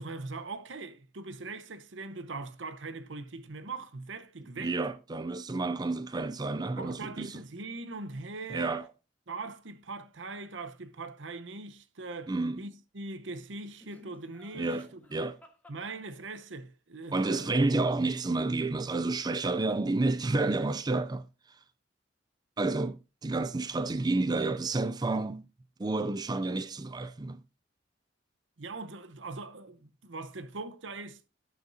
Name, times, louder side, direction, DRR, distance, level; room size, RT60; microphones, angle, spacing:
voice 1, 0.0-4.8 6.8-8.8 9.3-14.8 15.1-15.3 15.7-17.5 28.6-31.2, right 3 dB, 80° right, 0.9 m, -41 dB
voice 2, 4.6-7.4 8.5-8.9 12.3-12.6 14.5-15.4 17.1-21.6 22.6-25.5 25.8-27.4, right 2 dB, 20° right, 0.4 m, -30 dB
Laughter, 13.8-16.5 19.3-20.1 20.4-20.9, left 1 dB, 10° left, 1.4 m, -58 dB
17.5 x 6.1 x 2.7 m
head